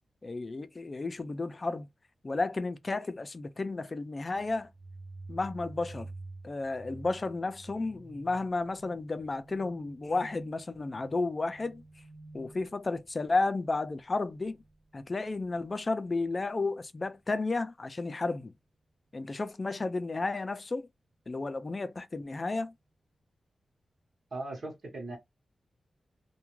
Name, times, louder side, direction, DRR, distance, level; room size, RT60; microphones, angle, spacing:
voice 1, 0.2-1.9 2.2-4.7 5.3-6.1 6.4-11.8 12.3-14.6 14.9-18.5 19.1-20.9 21.3-22.7, left 3 dB, 35° left, 0.4 m, -32 dB
sound 1, 4.3-15.8, right 2 dB, 30° right, 0.5 m, -50 dB
voice 2, 24.3-25.2, right 2 dB, 60° right, 0.9 m, -38 dB
2.3 x 2.2 x 3.0 m
wide cardioid pair, 100°, 0 cm